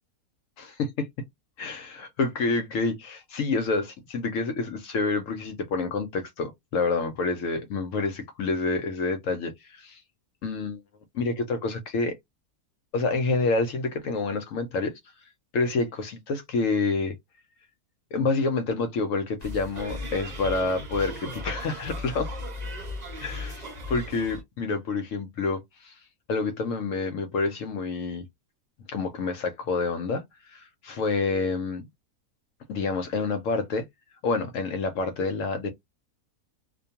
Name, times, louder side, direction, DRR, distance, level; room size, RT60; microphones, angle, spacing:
voice 1, 0.6-1.1 1.6-10.0 10.4-10.8 11.1-12.2 12.9-14.9 15.5-17.2 18.1-22.3 23.2-23.6 23.9-26.0 26.3-28.2 28.9-30.2 30.5-31.9 32.7-33.9 34.2-35.7, left 3 dB, 70° left, 0.8 m, -28 dB
sound 1, 19.4-24.4, left 1 dB, 35° right, 0.7 m, -36 dB
2.4 x 2.2 x 2.7 m
omnidirectional pair, 1.6 m